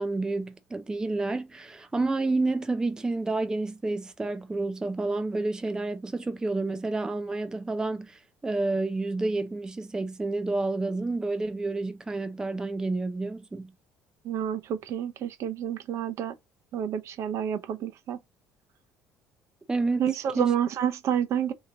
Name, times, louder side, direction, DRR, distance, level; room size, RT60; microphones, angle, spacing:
voice 1, 0.0-13.7 19.7-20.1 20.4-20.5, right 2 dB, 10° right, 0.4 m, -29 dB
voice 2, 14.2-16.3 16.7-18.2 20.0-21.5, right 9 dB, 60° right, 0.6 m, -29 dB
2.9 x 2.8 x 3.7 m
supercardioid pair, 95°, 6 cm